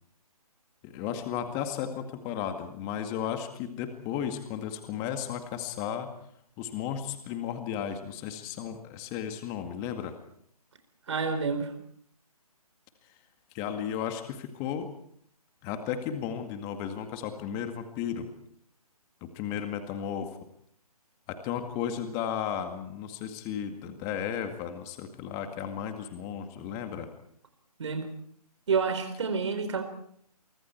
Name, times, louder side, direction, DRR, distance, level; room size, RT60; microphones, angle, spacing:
voice 1, 0.8-6.1 6.6-10.2 13.5-14.9 15.6-18.3 19.2-20.3 21.3-27.1, left 9 dB, 15° left, 7 dB, 2.1 m, -34 dB
voice 2, 11.1-11.7 27.8-28.1 28.7-29.8, right 5 dB, 50° right, 9 dB, 4.4 m, -28 dB
29.5 x 24.5 x 4.6 m, 0.66 s
figure-of-eight pair, 150°, 20 cm